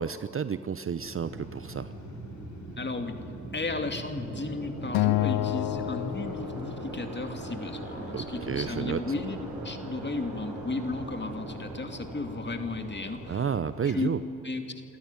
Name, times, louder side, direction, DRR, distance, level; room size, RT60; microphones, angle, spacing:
voice 1, 0.0-1.9 8.1-9.0 13.3-14.2, right 7 dB, 35° right, 14 dB, 0.8 m, -31 dB
sound 1, 0.9-13.6, right 2 dB, 65° right, 6.8 m, -40 dB
sound 2, 1.2-14.1, left 3 dB, 45° left, 3.6 m, -53 dB
voice 2, 2.8-3.2 3.5-13.4 13.8-14.1 14.4-14.6, left 3 dB, 25° left, 6 dB, 2.6 m, -34 dB
Acoustic guitar, 4.9-7.3, left 17 dB, 70° left, 0.6 m, -29 dB
28.0 x 13.5 x 9.2 m, 2.7 s
hypercardioid pair, 50°, 40 cm